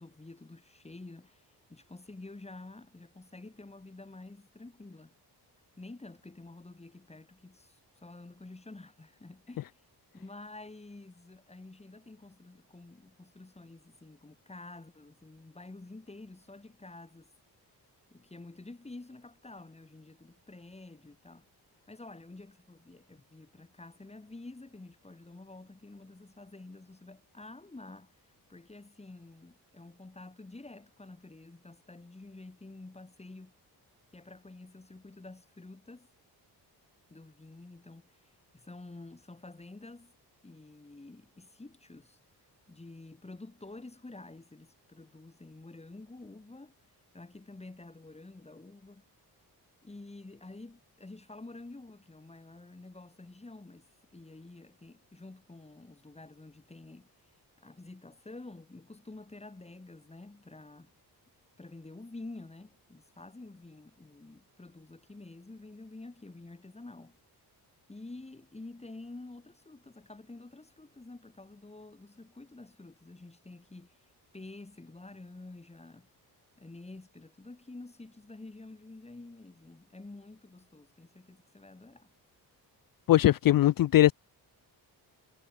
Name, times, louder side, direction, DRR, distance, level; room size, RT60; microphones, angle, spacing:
voice 1, 0.0-5.1 5.8-9.9 10.1-17.3 18.1-21.5 21.9-28.1 28.5-33.5 34.1-36.1 37.1-40.1 40.4-42.2 42.7-46.7 47.1-49.1 49.8-57.1 57.6-60.9 61.6-67.2 67.9-76.1 76.6-82.1, left 2 dB, 15° left, 4.6 m, -49 dB
voice 2, 83.1-84.1, left 14 dB, 60° left, 0.5 m, -20 dB
wide cardioid pair, 135°, 40 cm